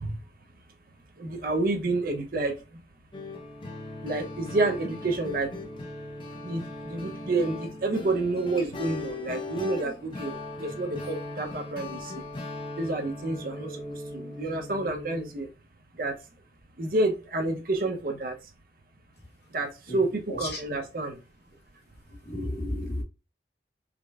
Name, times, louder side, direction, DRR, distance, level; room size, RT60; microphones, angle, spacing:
voice 1, 1.2-2.5 4.0-5.5 6.4-12.2 12.8-15.5 16.0-16.1 16.8-18.3 19.5-21.2, right 2 dB, 55° right, 0.7 m, -29 dB
sound 1, 3.1-15.3, left 2 dB, 30° left, 0.5 m, -39 dB
voice 2, 20.3-20.6 22.2-23.0, left 1 dB, 65° left, 1.3 m, -32 dB
4.9 x 2.1 x 2.3 m
head